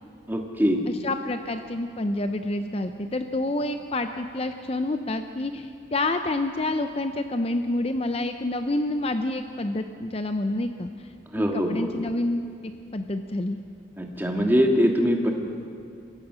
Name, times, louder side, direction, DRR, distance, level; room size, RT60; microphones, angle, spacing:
voice 1, 0.3-0.8 11.3-11.9 14.0-15.3, equal, 10° right, 2 dB, 1.8 m, -22 dB
voice 2, 1.0-10.9 11.5-13.6, left 2 dB, 30° left, 8 dB, 0.6 m, -28 dB
27.0 x 15.5 x 6.2 m, 2.4 s
head